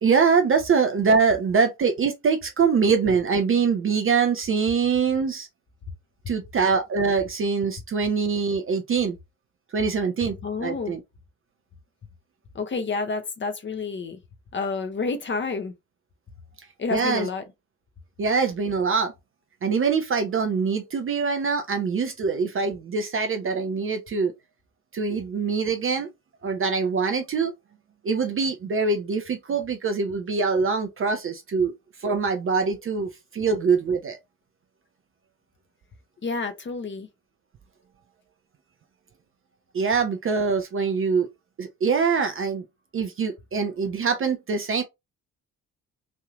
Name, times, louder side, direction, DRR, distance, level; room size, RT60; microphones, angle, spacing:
voice 1, 0.0-5.5 6.3-9.2 9.7-10.4 10.6-11.0 16.9-17.3 18.2-19.1 19.6-24.3 24.9-26.1 26.4-27.5 28.0-31.7 32.0-34.2 39.7-41.3 41.6-42.6 42.9-44.8, right 5 dB, 30° right, 0.6 m, -23 dB
voice 2, 10.4-11.0 12.5-14.2 14.5-15.7 16.8-17.4 36.2-37.1, left 4 dB, 25° left, 0.7 m, -29 dB
3.1 x 2.7 x 2.4 m
figure-of-eight pair, 45°, 46 cm